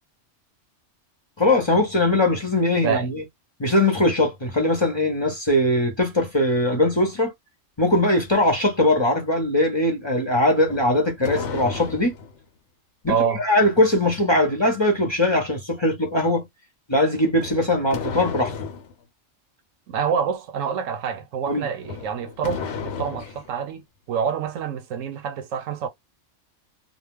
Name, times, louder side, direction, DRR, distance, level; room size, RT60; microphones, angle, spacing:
voice 1, 1.4-3.2 3.6-7.3 7.8-12.2 13.0-16.5 16.9-18.5 21.5-21.7, left 1 dB, 25° left, 0.7 m, -21 dB
sound 1, 10.6-12.4 17.3-18.9 21.8-23.5, left 5 dB, 65° left, 0.9 m, -33 dB
voice 2, 13.1-13.4 19.9-25.9, right 7 dB, 90° right, 1.0 m, -27 dB
2.3 x 2.1 x 3.4 m
omnidirectional pair, 1.3 m